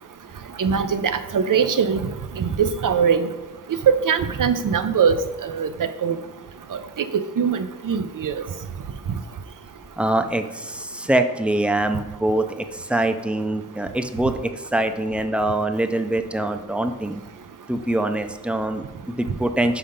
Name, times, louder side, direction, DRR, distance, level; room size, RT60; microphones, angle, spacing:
voice 1, 0.6-2.0 2.4-3.3 3.9-5.2 5.4-5.7 6.0-6.2 6.7-6.8 7.1-8.4, right 7 dB, 70° right, 11 dB, 0.5 m, -21 dB
voice 2, 10.0-17.2 17.7-19.8, right 1 dB, 5° right, 8 dB, 0.4 m, -24 dB
5.7 x 5.6 x 5.0 m, 1.1 s
wide cardioid pair, 90°, 33 cm